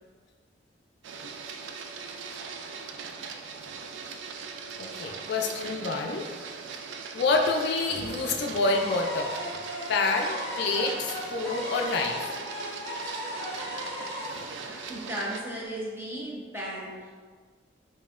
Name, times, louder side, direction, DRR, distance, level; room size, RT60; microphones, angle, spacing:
Printer, 1.0-15.4, right 5 dB, 90° right, 0.3 m, -40 dB
voice 1, 4.8-6.3 7.1-9.3 9.9-12.3 14.3-14.5, left 3 dB, 65° left, 3 dB, 0.3 m, -27 dB
sound 1, 8.6-15.6, left 1 dB, 15° left, 0.9 m, -37 dB
voice 2, 14.6-17.1, right 1 dB, 15° right, -5 dB, 0.8 m, -36 dB
4.9 x 2.7 x 2.4 m, 1.5 s
head